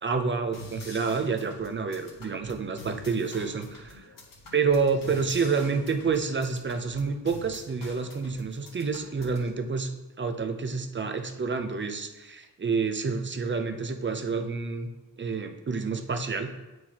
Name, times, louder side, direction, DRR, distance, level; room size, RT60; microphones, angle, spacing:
voice 1, 0.0-4.1 4.5-9.9 10.2-14.9 15.2-16.5, right 5 dB, 30° right, 6 dB, 0.6 m, -28 dB
sound 1, 0.5-9.5, left 1 dB, 60° left, 1.7 m, -46 dB
9.9 x 4.6 x 2.9 m, 1.1 s
wide cardioid pair, 110°, 38 cm